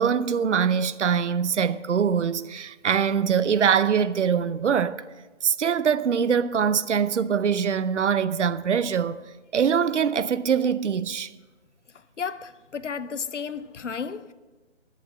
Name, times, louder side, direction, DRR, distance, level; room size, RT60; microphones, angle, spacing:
voice 1, 0.0-5.0 5.4-9.2 9.5-11.3, right 7 dB, 75° right, 0.6 m, -23 dB
voice 2, 12.2-14.3, left 6 dB, 75° left, 0.8 m, -33 dB
11.0 x 8.7 x 6.2 m
figure-of-eight pair, 160°, 36 cm